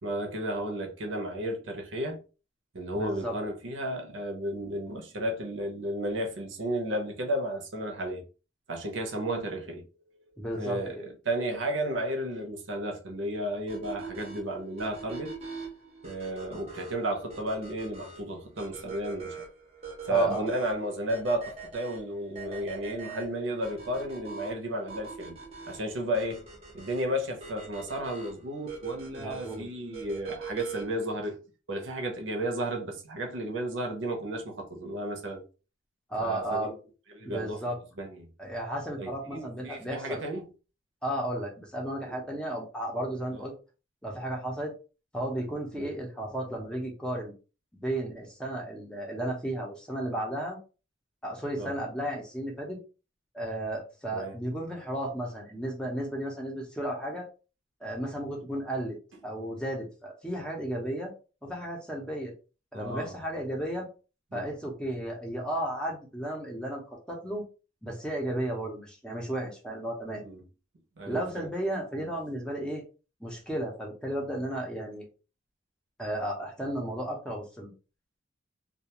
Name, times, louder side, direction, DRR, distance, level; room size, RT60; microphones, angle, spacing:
voice 1, 0.0-2.2 2.7-8.2 8.7-9.8 10.1-15.3 16.0-19.4 20.1-25.4 25.7-26.5 26.7-31.4 31.7-35.4 36.2-36.7 37.1-37.6 38.0-38.3 39.0-40.5 42.1-42.2 43.3-43.4 45.7-45.9 51.6-51.7 54.1-54.4 62.7-63.2 64.3-64.5 70.2-70.4 71.0-71.5 72.0-72.1, right 1 dB, 80° right, 0.7 m, -33 dB
voice 2, 2.9-3.3 10.4-11.0 20.1-20.5 29.2-29.7 36.1-36.7 37.3-37.8 38.4-40.2 41.0-43.5 44.0-44.7 45.1-47.3 47.7-50.6 51.2-52.8 53.3-57.3 57.8-59.0 59.2-61.1 61.4-62.3 62.7-63.9 64.3-66.8 67.1-67.4 67.8-70.2 71.1-72.8 73.2-75.1 76.0-77.7, right 1 dB, 5° left, 0.6 m, -34 dB
sound 1, 13.7-31.1, right 4 dB, 30° right, 0.6 m, -43 dB
2.4 x 2.2 x 2.8 m
head